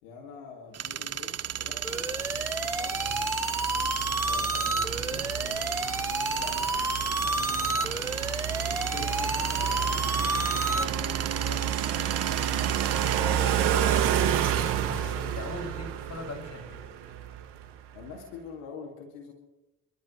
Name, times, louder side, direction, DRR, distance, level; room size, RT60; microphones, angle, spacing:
voice 1, 0.0-3.3 4.2-5.0 6.3-6.8 7.1-10.2 10.5-14.3 17.9-19.3, left 4 dB, 90° left, 1 dB, 2.3 m, -46 dB
sound 1, 0.7-13.2, right 9 dB, 35° right, 0.8 m, -35 dB
sound 2, 1.6-17.7, right 10 dB, 75° right, 2.1 m, -31 dB
sound 3, 1.8-10.8, right 1 dB, 5° right, 1.1 m, -31 dB
voice 2, 3.7-5.2 7.3-8.0 13.1-13.5 14.9-16.9, left 2 dB, 40° left, 0 dB, 6.3 m, -42 dB
28.5 x 13.0 x 3.2 m, 0.99 s
hypercardioid pair, 55°, 41 cm